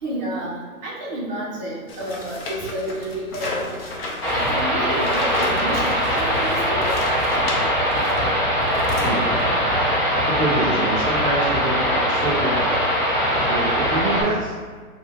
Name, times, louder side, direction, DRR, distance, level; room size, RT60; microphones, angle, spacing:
voice 1, 0.0-0.5 0.8-3.6 4.3-7.0, right 1 dB, 30° right, -5 dB, 1.1 m, -30 dB
sound 1, 1.9-8.3 8.6-9.6, left 2 dB, 40° left, 0.8 m, -32 dB
sound 2, 4.2-14.2, equal, 15° left, 1.4 m, -21 dB
voice 2, 9.0-9.4 10.2-12.7 13.4-14.5, right 2 dB, 5° right, -15 dB, 0.8 m, -26 dB
4.9 x 2.7 x 3.7 m, 1.5 s
hypercardioid pair, 145°, 44 cm